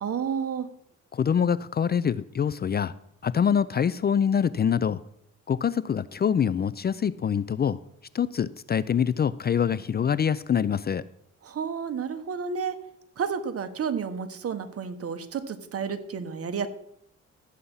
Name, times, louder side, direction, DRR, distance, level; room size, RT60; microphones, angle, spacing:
voice 1, 0.0-0.7 11.4-12.8 13.2-16.7, right 6 dB, 50° right, 10 dB, 1.3 m, -31 dB
voice 2, 1.1-2.9 3.2-5.0 5.5-7.8 8.1-11.0, left 8 dB, 35° left, 17 dB, 0.4 m, -25 dB
13.0 x 8.3 x 5.5 m, 0.73 s
cardioid pair, 90°, 30 cm